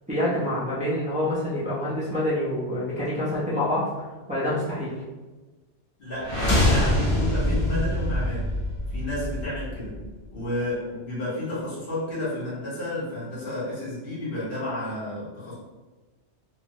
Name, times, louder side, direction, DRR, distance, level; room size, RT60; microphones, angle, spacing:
voice 1, 0.1-3.8 4.3-5.0, left 1 dB, 10° right, -9 dB, 0.4 m, -26 dB
voice 2, 6.0-8.5 8.9-10.0 10.3-15.5, left 1 dB, 55° left, -9 dB, 1.2 m, -31 dB
sound 1, 6.2-10.2, left 1 dB, 35° left, 0.6 m, -24 dB
3.2 x 2.1 x 2.6 m, 1.2 s
omnidirectional pair, 1.2 m